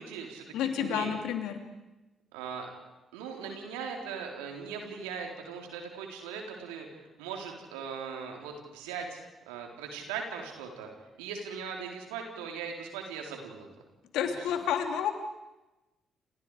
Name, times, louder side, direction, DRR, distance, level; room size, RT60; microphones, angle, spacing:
voice 1, 0.0-0.5 0.8-1.2 2.3-2.7 3.1-10.9 11.2-13.7 14.2-14.3, right 6 dB, 85° right, 2 dB, 4.0 m, -39 dB
voice 2, 0.5-1.6 14.1-15.1, left 8 dB, 75° left, 6 dB, 2.8 m, -30 dB
29.5 x 28.5 x 5.0 m, 1.0 s
hypercardioid pair, 45°, 0 cm